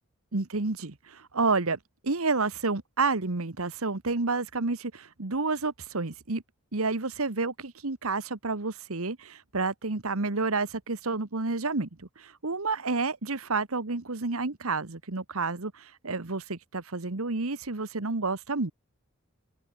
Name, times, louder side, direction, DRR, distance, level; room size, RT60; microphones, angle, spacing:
voice 1, 0.3-6.4 6.7-18.7, right 3 dB, 75° right, 1.4 m, -30 dB
open air
head